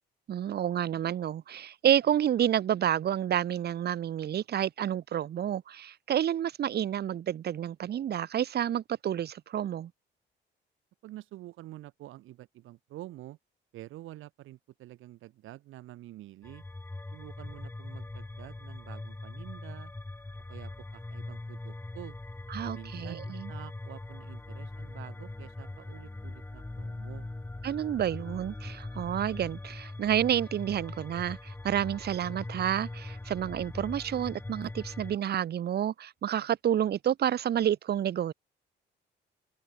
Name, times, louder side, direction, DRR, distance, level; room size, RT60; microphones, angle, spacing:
voice 1, 0.3-9.9 22.5-23.5 27.6-38.3, right 10 dB, 55° right, 0.8 m, -29 dB
voice 2, 11.0-13.4 13.7-16.6 17.1-19.9 20.5-22.2 22.6-27.3, right 15 dB, 90° right, 2.7 m, -48 dB
sound 1, 16.4-35.2, left 2 dB, 10° left, 0.8 m, -41 dB
open air
cardioid pair, 90°, 20 cm